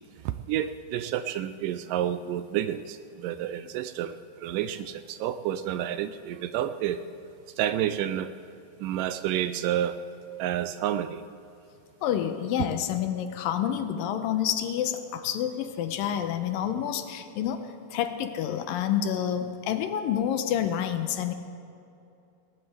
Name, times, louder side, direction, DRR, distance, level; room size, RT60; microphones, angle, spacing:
voice 1, 0.2-7.0 7.6-8.3 8.8-10.0 10.4-11.3, right 11 dB, 80° right, 11 dB, 2.0 m, -30 dB
voice 2, 12.0-21.3, left 10 dB, 85° left, 8 dB, 2.5 m, -28 dB
18.5 x 18.5 x 3.4 m, 2.6 s
omnidirectional pair, 4.0 m